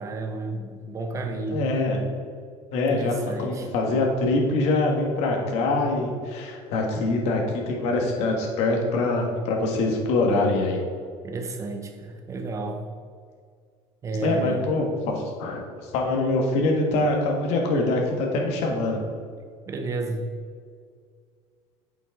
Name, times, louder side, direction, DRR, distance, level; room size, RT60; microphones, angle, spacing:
voice 1, 0.0-1.7 2.9-3.7 11.2-12.8 14.0-14.7 19.7-20.3, right 3 dB, 25° right, 5 dB, 0.7 m, -31 dB
voice 2, 1.5-2.0 2.7-10.8 14.2-19.0, left 2 dB, 65° left, 1 dB, 1.5 m, -24 dB
8.2 x 6.0 x 3.7 m, 2.1 s
cardioid pair, 150°, 12 cm